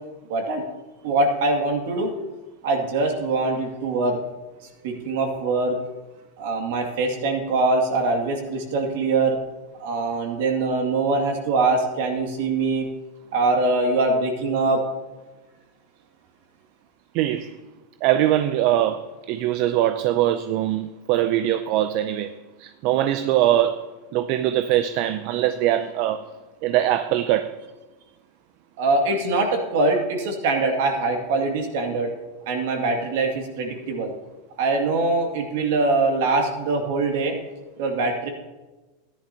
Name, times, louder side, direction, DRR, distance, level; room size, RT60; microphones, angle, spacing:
voice 1, 0.3-0.6 1.0-2.1 2.6-4.2 4.8-5.8 6.4-9.4 9.8-12.9 13.3-14.8 28.8-32.1 32.5-34.1 34.6-37.3 37.8-38.3, right 3 dB, 70° right, 2.3 m, -23 dB
voice 2, 17.1-17.6 18.0-26.3 26.6-27.6, right 12 dB, 55° right, 0.4 m, -22 dB
14.0 x 10.5 x 2.9 m
supercardioid pair, 135°, 0 cm